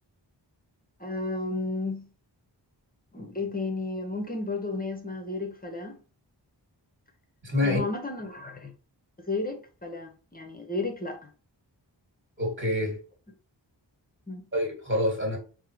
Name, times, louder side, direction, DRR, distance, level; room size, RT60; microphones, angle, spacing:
voice 1, 1.0-2.1 3.1-6.0 7.6-8.7 9.2-11.3 14.3-14.5, left 3 dB, 20° left, 0.7 m, -33 dB
voice 2, 7.4-7.8 12.4-13.0 14.5-15.4, left 1 dB, 25° right, 1.6 m, -26 dB
3.6 x 2.1 x 3.0 m
wide cardioid pair, 45°, 45 cm